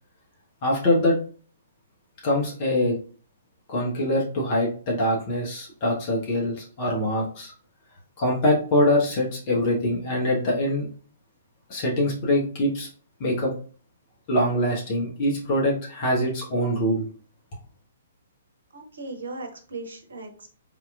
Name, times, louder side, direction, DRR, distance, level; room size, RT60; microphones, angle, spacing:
voice 1, 0.6-1.2 2.2-3.0 3.7-7.5 8.2-10.9 11.7-12.9 13.2-13.5 14.3-17.1, left 1 dB, 35° left, -3 dB, 1.1 m, -23 dB
voice 2, 18.7-20.5, right 3 dB, 70° right, 4 dB, 0.8 m, -37 dB
3.7 x 2.9 x 2.4 m, 0.41 s
figure-of-eight pair, 120°, 0 cm